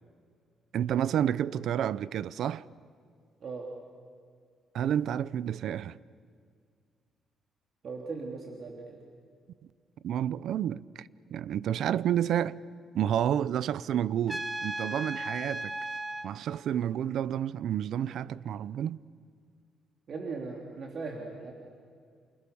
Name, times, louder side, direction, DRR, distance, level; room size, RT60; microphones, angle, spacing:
voice 1, 0.7-2.6 4.7-6.0 10.0-12.6 12.9-15.7 16.2-19.0, right 10 dB, 75° right, 0.6 m, -30 dB
voice 2, 7.8-9.0 20.1-21.5, right 4 dB, 55° right, 3.5 m, -38 dB
Trumpet, 14.3-16.3, right 2 dB, 10° right, 1.8 m, -35 dB
29.5 x 28.0 x 7.0 m
cardioid pair, 90°, 0 cm